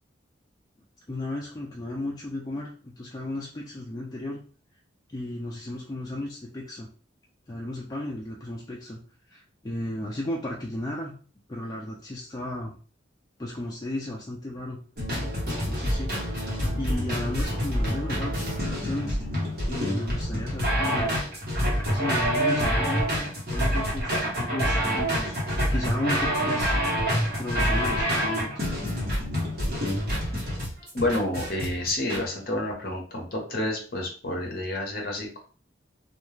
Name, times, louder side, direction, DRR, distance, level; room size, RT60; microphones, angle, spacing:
voice 1, 1.1-4.4 5.1-6.9 7.5-9.0 9.3-11.1 11.5-12.8 13.4-14.8 15.5-16.2 16.8-19.2 19.7-21.2 21.9-26.8 27.4-28.7, left 1 dB, 20° left, -3 dB, 0.3 m, -34 dB
sound 1, 15.0-32.2, equal, 50° right, 1.0 m, -27 dB
voice 2, 30.9-35.4, left 1 dB, 50° left, 0 dB, 0.8 m, -29 dB
2.3 x 2.2 x 3.1 m, 0.40 s
head